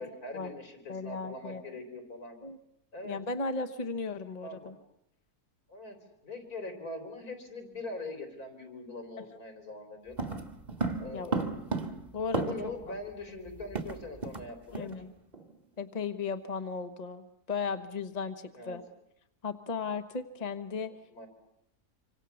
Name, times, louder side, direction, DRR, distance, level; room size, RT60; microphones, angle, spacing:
voice 1, 0.0-2.4 2.9-3.2 4.4-4.7 5.7-6.0 6.2-10.2 11.0-11.6 12.3-14.9 18.5-18.8 20.8-21.3, left 2 dB, 75° left, 6 dB, 4.7 m, -42 dB
voice 2, 0.9-1.6 2.4-2.6 3.0-4.8 9.3-9.4 11.1-11.3 12.1-13.0 14.7-15.1 15.8-18.8 19.4-20.9, left 4 dB, 30° left, 8 dB, 1.2 m, -36 dB
sound 1, 10.2-12.8 13.1-13.2 13.5-14.5 14.7-15.0 15.3-15.6, right 3 dB, 30° right, 1.8 m, -34 dB
26.0 x 25.5 x 7.1 m, 0.79 s
omnidirectional pair, 1.6 m